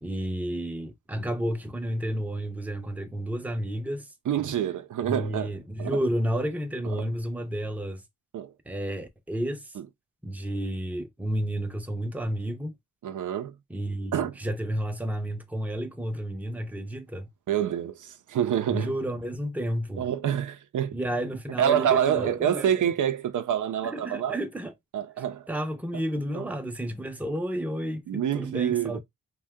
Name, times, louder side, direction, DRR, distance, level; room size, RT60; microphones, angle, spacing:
voice 1, 0.0-4.1 5.1-8.0 8.7-9.7 10.2-12.8 13.7-17.3 18.7-20.1 20.9-22.8 23.8-24.7 25.5-29.0, right 1 dB, 5° right, 0.6 m, -31 dB
voice 2, 4.3-6.0 6.8-7.1 8.3-8.5 9.8-9.9 13.0-13.6 14.1-14.4 17.5-18.9 20.0-21.0 21.6-24.3 24.9-25.5 25.9-26.0 26.3-26.5 28.1-29.0, right 9 dB, 65° right, 0.5 m, -27 dB
2.7 x 2.2 x 3.4 m
cardioid pair, 85°, 32 cm